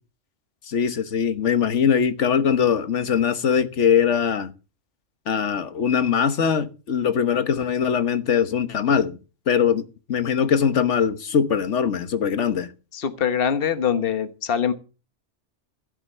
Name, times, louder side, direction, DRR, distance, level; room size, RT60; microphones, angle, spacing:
voice 1, 0.7-4.5 5.3-9.2 9.5-12.7, left 7 dB, 70° left, 1.5 m, -21 dB
voice 2, 12.9-14.7, left 8 dB, 50° left, 1.4 m, -23 dB
15.5 x 8.0 x 6.7 m
omnidirectional pair, 1.3 m